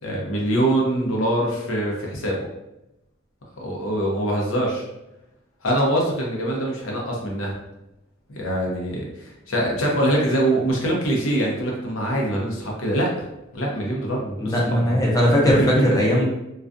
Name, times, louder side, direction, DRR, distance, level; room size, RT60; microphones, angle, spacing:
voice 1, 0.0-2.5 3.6-4.9 5.6-7.5 8.3-13.3 13.5-15.0 15.4-15.8, right 1 dB, 70° left, -2 dB, 0.7 m, -24 dB
voice 2, 14.4-16.2, equal, 15° left, -3 dB, 0.6 m, -19 dB
2.4 x 2.3 x 2.5 m, 0.91 s
head